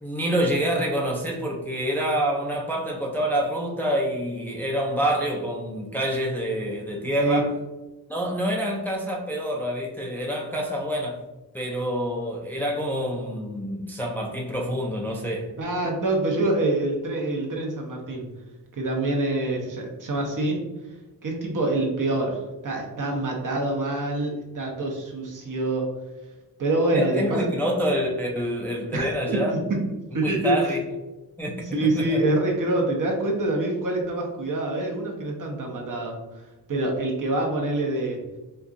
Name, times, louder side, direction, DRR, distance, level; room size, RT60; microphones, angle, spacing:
voice 1, 0.0-7.5 8.1-11.2 11.5-15.5 26.9-29.5 30.2-30.8 31.4-32.2, equal, 5° left, -1 dB, 0.4 m, -27 dB
voice 2, 15.6-18.3 18.7-20.6 21.2-25.9 26.6-27.5 28.9-29.4 29.7-29.8 30.1-30.7 31.7-36.2 36.7-38.2, right 2 dB, 50° right, 0 dB, 0.9 m, -26 dB
4.3 x 2.4 x 2.5 m, 1.1 s
cardioid pair, 85°, 40 cm